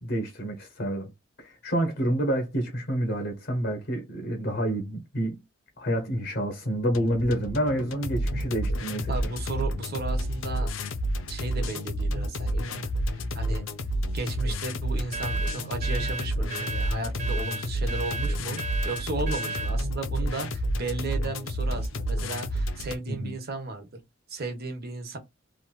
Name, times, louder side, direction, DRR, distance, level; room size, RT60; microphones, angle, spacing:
voice 1, 0.0-1.1 1.4-5.4 5.8-9.1 23.1-23.3, right 1 dB, 65° left, 0.9 m, -28 dB
sound 1, 6.9-23.0, equal, 90° left, 0.5 m, -30 dB
voice 2, 9.1-10.7 11.3-13.7 14.1-23.9 24.3-25.2, right 3 dB, 55° right, 0.9 m, -35 dB
sound 2, 15.1-19.8, right 3 dB, 35° right, 0.3 m, -35 dB
3.0 x 2.5 x 2.2 m
head